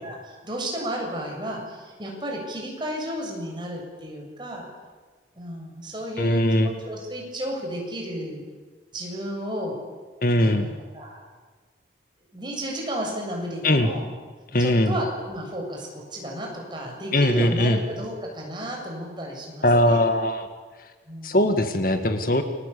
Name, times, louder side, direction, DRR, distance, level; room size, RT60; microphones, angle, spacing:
voice 1, 0.0-4.7 5.3-8.5 8.9-9.8 10.4-10.7 10.9-11.2 12.3-14.1 14.6-20.0 21.1-21.4, equal, 25° right, 0 dB, 7.4 m, -33 dB
voice 2, 6.2-6.7 10.2-10.7 13.6-13.9 14.5-15.0 17.1-17.8 19.6-20.5 21.2-22.4, left 1 dB, 50° left, 7 dB, 2.0 m, -20 dB
29.5 x 23.5 x 8.6 m, 1.4 s
head